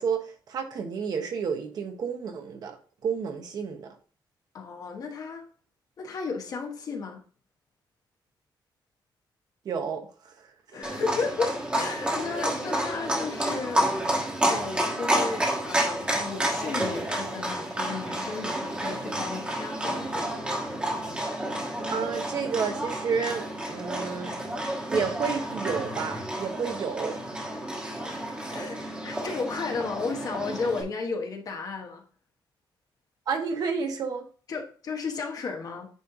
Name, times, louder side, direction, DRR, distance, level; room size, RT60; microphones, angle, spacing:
voice 1, 0.0-2.8 3.0-3.9 9.6-10.3 10.7-10.9 21.9-24.3 24.9-27.2 33.3-34.2, right 6 dB, 55° right, 1.1 m, -30 dB
voice 2, 4.5-5.4 6.0-7.2 10.7-13.9 14.4-20.4 28.1-28.2 28.5-32.0 34.5-35.9, left 4 dB, 50° left, 1.2 m, -34 dB
Livestock farm animals working animals, 10.8-30.8, right 1 dB, 15° right, 1.5 m, -30 dB
9.2 x 3.2 x 3.8 m
wide cardioid pair, 175°, 8 cm